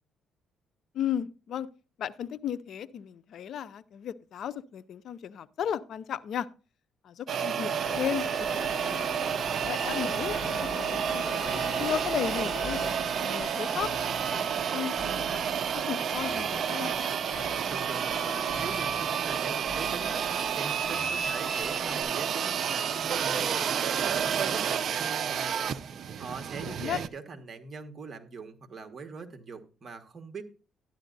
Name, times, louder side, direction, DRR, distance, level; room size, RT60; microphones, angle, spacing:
voice 1, 0.9-1.7 2.0-6.5 7.0-9.1 9.6-11.5 11.8-12.8 13.2-13.9 14.3-17.1 26.6-27.0, left 9 dB, 60° left, 0.5 m, -35 dB
sound 1, 7.3-27.1, right 8 dB, 55° right, 0.6 m, -30 dB
Stream, 7.8-12.9, left 4 dB, 40° left, 1.9 m, -40 dB
sound 2, 9.9-22.0, left 1 dB, 20° left, 7.2 m, -44 dB
voice 2, 17.7-20.2 20.5-25.5 26.2-30.4, right 4 dB, 40° right, 1.5 m, -42 dB
12.5 x 10.5 x 2.6 m
cardioid pair, 105°, 0 cm